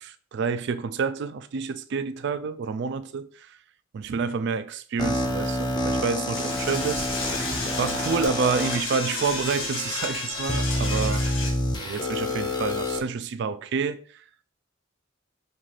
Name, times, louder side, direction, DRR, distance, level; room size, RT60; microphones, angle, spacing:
voice 1, 0.0-3.5 3.9-7.1 7.8-11.2 11.8-14.0, right 5 dB, 55° right, 0.3 m, -28 dB
sound 1, 5.0-8.8 9.5-9.6 10.5-13.0, left 1 dB, 20° left, 0.5 m, -28 dB
Door / Toilet flush, 6.3-11.5, left 2 dB, 85° left, 1.5 m, -32 dB
5.4 x 2.4 x 3.2 m
head